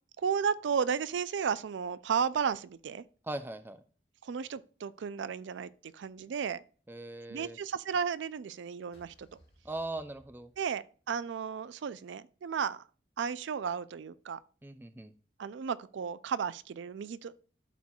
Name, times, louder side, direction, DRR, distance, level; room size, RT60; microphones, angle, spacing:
voice 1, 0.2-3.0 4.2-6.6 7.3-9.3 10.6-12.8 13.2-14.4 15.4-17.3, right 6 dB, 80° right, 0.4 m, -33 dB
voice 2, 3.2-3.8 6.9-7.6 9.6-10.5 14.6-15.1, right 2 dB, 10° right, 0.4 m, -40 dB
sound 1, 8.9-11.3, equal, 60° left, 2.0 m, -63 dB
12.0 x 4.4 x 2.3 m
head